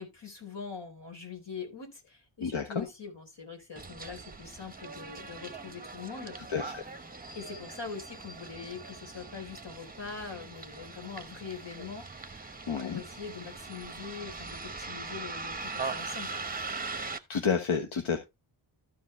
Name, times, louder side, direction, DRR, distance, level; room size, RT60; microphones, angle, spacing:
voice 1, 0.0-6.4 7.3-16.3, left 5 dB, 60° left, 3.9 m, -43 dB
voice 2, 2.4-2.8 6.5-6.8 12.7-13.0 17.3-18.2, left 6 dB, 85° left, 1.4 m, -30 dB
Bus, 3.8-17.2, right 4 dB, 20° right, 1.0 m, -41 dB
14.0 x 5.0 x 3.3 m
wide cardioid pair, 90°, 47 cm